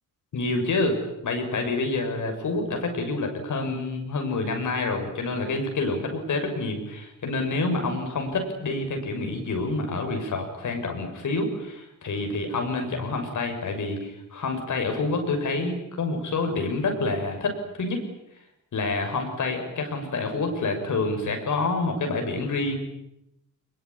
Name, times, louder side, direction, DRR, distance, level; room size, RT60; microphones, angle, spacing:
voice 1, 0.3-18.0 18.7-22.8, left 3 dB, 65° left, 5 dB, 6.9 m, -28 dB
24.0 x 22.5 x 10.0 m, 0.83 s
cardioid pair, 105°, 32 cm